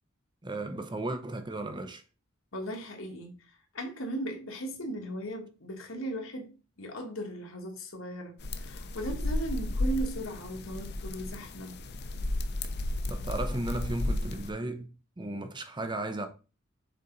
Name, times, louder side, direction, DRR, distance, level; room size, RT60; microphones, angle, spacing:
voice 1, 0.4-2.0 13.1-16.3, right 2 dB, 20° right, 0.7 m, -35 dB
voice 2, 2.5-3.3 3.7-6.5 6.8-11.7 14.0-14.1, right 1 dB, 75° left, 1.6 m, -37 dB
sound 1, 8.4-14.5, left 1 dB, 55° left, 0.6 m, -33 dB
6.7 x 4.0 x 3.9 m
head